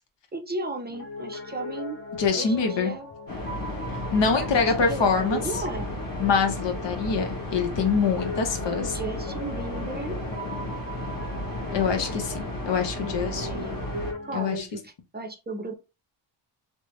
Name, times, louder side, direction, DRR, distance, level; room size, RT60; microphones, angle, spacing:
voice 1, 0.3-2.0 2.3-3.1 4.3-5.9 8.8-10.2 13.0-15.7, right 2 dB, 20° right, 5 dB, 0.5 m, -35 dB
Piano, 0.9-14.6, left 2 dB, 30° left, 0.8 m, -41 dB
voice 2, 2.2-2.9 4.1-5.4 6.2-8.9 11.7-13.7 14.3-14.7, left 5 dB, 60° left, 5 dB, 0.9 m, -25 dB
sound 1, 3.3-14.1, left 1 dB, 45° left, 1.2 m, -33 dB
3.3 x 2.2 x 3.0 m, 0.28 s
cardioid pair, 90°, 48 cm